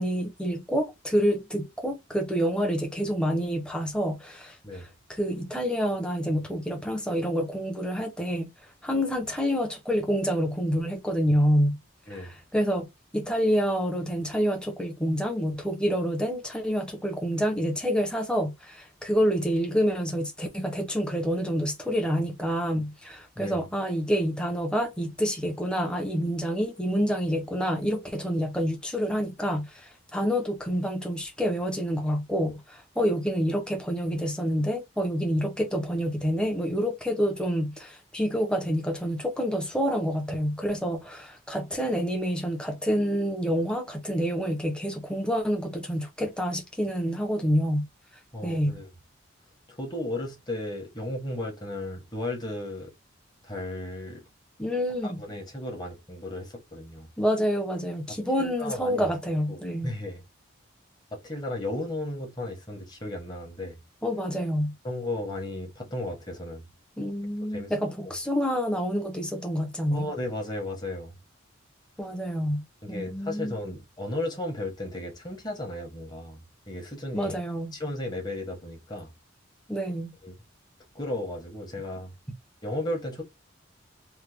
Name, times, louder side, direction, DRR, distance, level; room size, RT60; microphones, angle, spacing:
voice 1, 0.0-8.5 8.8-11.8 12.1-12.9 13.1-47.9 48.4-48.8 54.6-55.2 57.2-59.9 64.0-64.7 67.0-70.1 72.0-73.6 77.1-77.7 79.7-80.1, equal, 5° left, 0.7 m, -27 dB
voice 2, 48.3-48.9 49.7-52.9 53.4-54.2 55.0-57.1 58.1-59.1 59.5-60.2 61.1-63.8 64.8-66.6 67.5-67.7 68.0-68.1 69.9-71.1 72.8-77.4 77.7-79.1 80.2-80.3 80.9-82.1 82.6-83.2, left 1 dB, 20° left, 1.0 m, -35 dB
3.3 x 2.1 x 3.3 m
head